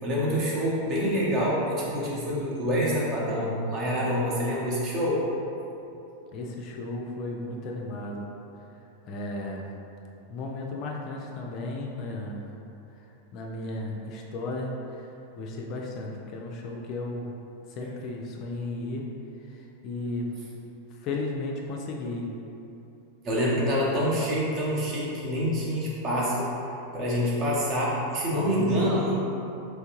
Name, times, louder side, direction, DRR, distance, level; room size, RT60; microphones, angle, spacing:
voice 1, 0.0-5.2 23.2-26.5 26.9-29.1, equal, 35° right, -5 dB, 0.9 m, -26 dB
voice 2, 6.3-8.3 9.1-9.7 10.3-12.5 12.9-13.1 13.3-17.3 17.7-19.1 19.4-20.3 20.9-22.3, left 2 dB, 40° left, -1 dB, 0.4 m, -34 dB
3.3 x 3.2 x 2.9 m, 2.9 s
figure-of-eight pair, 90°, 0 cm